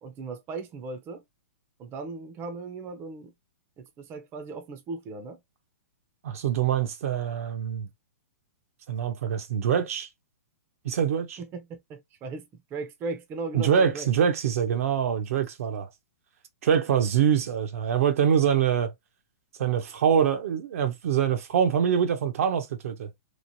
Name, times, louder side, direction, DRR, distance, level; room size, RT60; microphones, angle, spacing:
voice 1, 0.0-1.2 1.8-3.3 3.8-5.4 11.4-14.1, right 3 dB, 25° right, 0.6 m, -37 dB
voice 2, 6.2-7.9 8.9-10.1 10.8-11.4 13.5-15.9 16.6-18.9 19.6-23.1, right 8 dB, 65° right, 0.7 m, -24 dB
3.1 x 2.4 x 2.6 m
hypercardioid pair, 130°, 8 cm